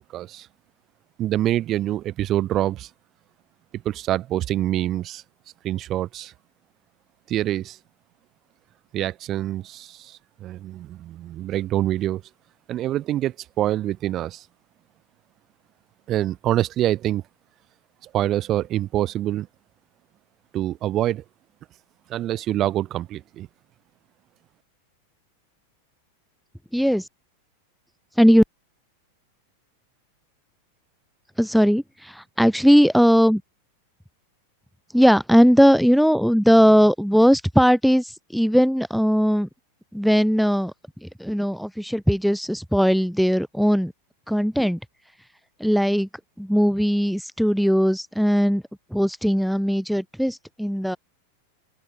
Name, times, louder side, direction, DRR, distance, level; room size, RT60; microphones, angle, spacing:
voice 1, 0.1-0.5 1.2-2.9 3.7-5.2 5.6-6.3 7.3-7.8 8.9-12.2 12.7-14.4 16.1-17.2 18.0-19.5 20.5-21.2 22.1-23.5, right 13 dB, 30° right, 0.7 m, -25 dB
voice 2, 26.7-27.1 28.2-28.4 31.4-33.4 34.9-39.5 39.9-40.7 41.0-43.9 44.3-44.8 45.6-46.1 46.4-48.6 48.9-51.0, equal, ahead, 0.5 m, -19 dB
open air
figure-of-eight pair, 90°, 0 cm